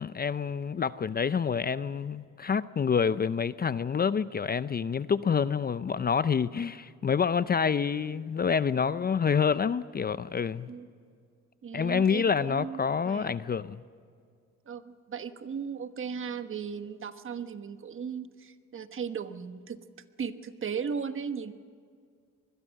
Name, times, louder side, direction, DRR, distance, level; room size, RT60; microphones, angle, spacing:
voice 1, 0.0-10.7 11.7-13.8, left 6 dB, 30° left, 15 dB, 0.6 m, -27 dB
voice 2, 11.6-13.3 14.7-19.8 20.2-21.5, right 6 dB, 45° right, 10 dB, 1.3 m, -36 dB
24.5 x 21.0 x 6.6 m, 2.1 s
cardioid pair, 90°, 30 cm